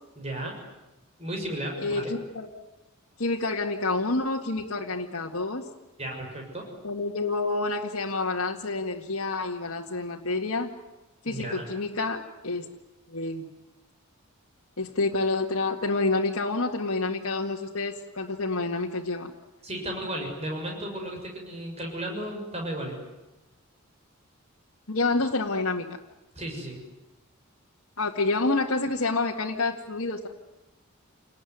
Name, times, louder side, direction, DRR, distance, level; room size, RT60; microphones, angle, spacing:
voice 1, 0.2-0.6 1.2-2.1 6.0-6.6 11.2-11.6 19.6-22.9 26.3-26.8, right 1 dB, 30° right, 1 dB, 6.6 m, -34 dB
voice 2, 1.8-2.5 3.2-5.6 6.8-10.7 11.2-12.7 13.1-13.5 14.8-19.3 24.9-25.9 28.0-30.3, left 3 dB, 65° left, -3 dB, 2.0 m, -28 dB
28.5 x 19.5 x 9.5 m, 1.0 s
head